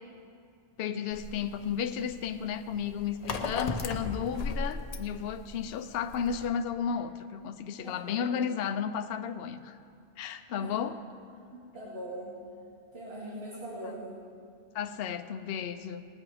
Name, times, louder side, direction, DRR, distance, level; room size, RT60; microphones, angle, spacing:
voice 1, 0.8-9.8 10.2-11.0 14.7-16.0, left 7 dB, 70° left, 9 dB, 0.8 m, -33 dB
sound 1, 1.1-6.5, left 3 dB, 40° left, 0.7 m, -36 dB
voice 2, 7.8-8.5 10.6-10.8 11.5-12.3 12.9-14.1, right 1 dB, 80° right, -8 dB, 2.5 m, -41 dB
19.5 x 8.5 x 4.9 m, 2.5 s
omnidirectional pair, 1.1 m